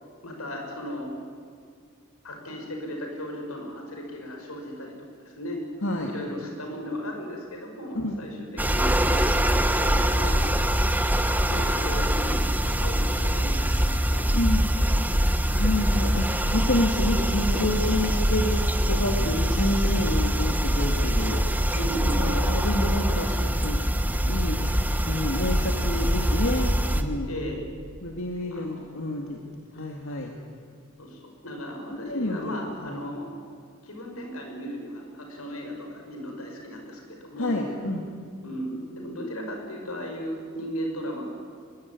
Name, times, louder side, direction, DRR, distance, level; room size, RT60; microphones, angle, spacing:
voice 1, 0.2-1.1 2.2-5.6 6.0-10.4 11.5-14.3 14.9-15.0 15.5-15.7 21.7-22.4 26.2-26.3 27.3-27.6 28.5-28.8 31.0-33.4 33.8-37.6 38.4-41.3, equal, 90° left, 2 dB, 6.5 m, -36 dB
voice 2, 5.8-6.1 8.0-8.2 14.3-14.6 15.6-21.4 22.0-23.8 24.3-27.3 28.0-29.4 29.7-30.3 32.0-32.5 32.8-33.0 37.4-38.0, left 1 dB, 65° left, 2 dB, 2.3 m, -29 dB
sound 1, 8.6-27.0, equal, 10° right, 1.4 m, -24 dB
24.0 x 22.0 x 9.6 m, 2.1 s
head